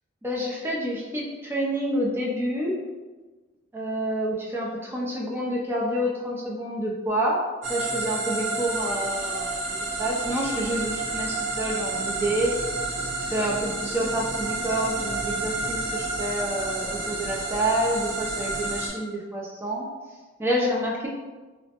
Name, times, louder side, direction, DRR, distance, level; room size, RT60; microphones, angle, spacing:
voice 1, 0.2-2.7 3.7-7.4 7.7-12.5 13.2-19.9 20.4-21.1, right 1 dB, 10° right, -3 dB, 0.4 m, -28 dB
sound 1, 7.6-18.9, right 2 dB, 65° right, 0.6 m, -30 dB
3.1 x 2.0 x 2.8 m, 1.3 s
head